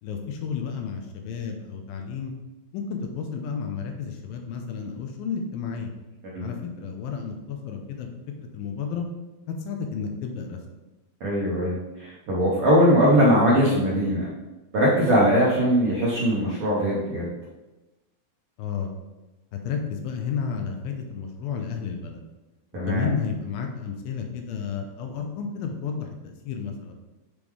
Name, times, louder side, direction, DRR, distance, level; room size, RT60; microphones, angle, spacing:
voice 1, 0.0-2.3 2.7-5.9 6.4-8.1 8.4-9.1 9.5-10.6 18.6-18.9 19.6-22.2 22.8-26.9, left 6 dB, 80° left, 4 dB, 2.3 m, -32 dB
voice 2, 11.2-14.2 14.7-17.3 22.7-23.1, equal, 75° right, -6 dB, 1.2 m, -21 dB
7.0 x 3.7 x 4.7 m, 1.1 s
omnidirectional pair, 4.4 m